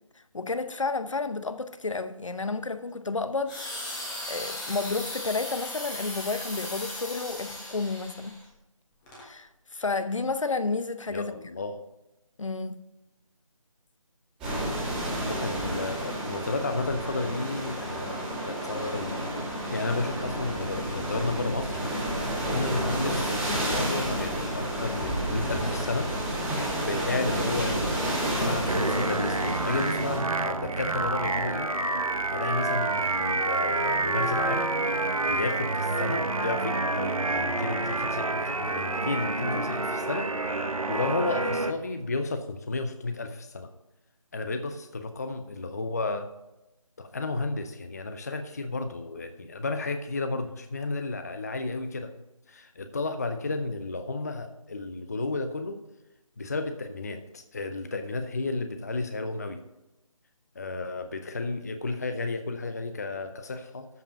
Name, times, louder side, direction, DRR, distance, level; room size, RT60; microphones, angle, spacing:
voice 1, 0.3-3.9 4.3-8.4 9.2-11.3 12.4-12.8, left 3 dB, 65° left, 0.8 m, -31 dB
sound 1, 3.5-8.4 9.1-9.2, left 1 dB, 10° left, 1.3 m, -37 dB
voice 2, 11.1-11.8 15.2-19.2 19.7-21.8 22.4-26.1 26.9-31.7 32.3-34.7 35.3-40.3 40.9-43.7 44.3-46.3 47.0-52.1 52.5-55.8 56.4-59.6 60.6-63.9, left 3 dB, 30° left, 0.6 m, -32 dB
sound 2, 14.4-30.2, right 1 dB, 5° right, 2.1 m, -30 dB
sound 3, 28.7-41.7, right 3 dB, 80° right, 0.9 m, -28 dB
13.0 x 5.1 x 5.2 m
figure-of-eight pair, 160°, 18 cm